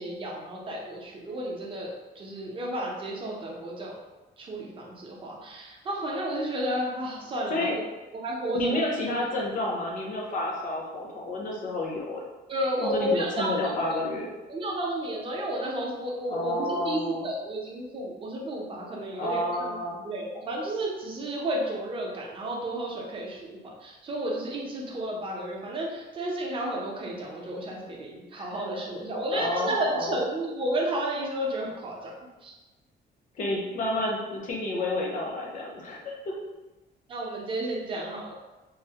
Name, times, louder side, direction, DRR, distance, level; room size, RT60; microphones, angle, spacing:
voice 1, 0.0-1.9 2.2-4.0 4.4-7.8 8.2-8.8 12.5-13.5 13.9-14.1 14.5-19.8 20.0-32.5 37.1-38.4, right 1 dB, 30° right, -3 dB, 0.5 m, -32 dB
voice 2, 8.5-12.2 12.8-14.3 16.3-17.3 19.2-20.0 28.3-28.8 29.3-30.2 33.4-36.3, left 1 dB, 45° left, -1 dB, 0.6 m, -30 dB
3.2 x 2.0 x 2.7 m, 1.1 s
cardioid pair, 180°, 18 cm